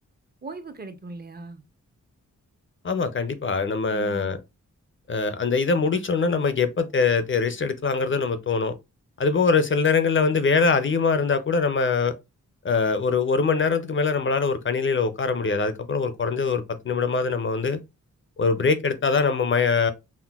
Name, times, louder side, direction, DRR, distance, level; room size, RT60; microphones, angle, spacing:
voice 1, 0.4-1.6 3.9-4.4, right 3 dB, 30° right, 0.5 m, -39 dB
voice 2, 2.8-4.4 5.1-8.7 9.2-12.1 12.6-17.8 18.4-19.9, left 4 dB, 40° left, 0.4 m, -23 dB
5.7 x 2.1 x 2.2 m
wide cardioid pair, 150°, 32 cm